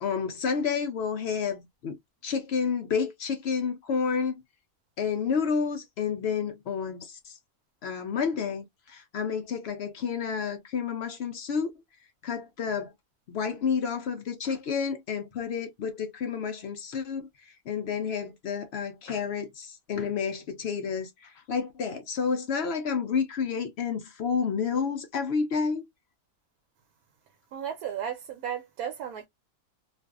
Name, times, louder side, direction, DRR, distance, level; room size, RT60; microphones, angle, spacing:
voice 1, 0.0-2.0 2.2-4.4 5.0-7.3 7.8-11.7 12.2-12.9 13.3-17.3 17.7-25.8, left 6 dB, 65° left, 0.6 m, -30 dB
voice 2, 27.5-29.3, right 9 dB, 80° right, 1.1 m, -34 dB
2.5 x 2.3 x 2.2 m
omnidirectional pair, 1.6 m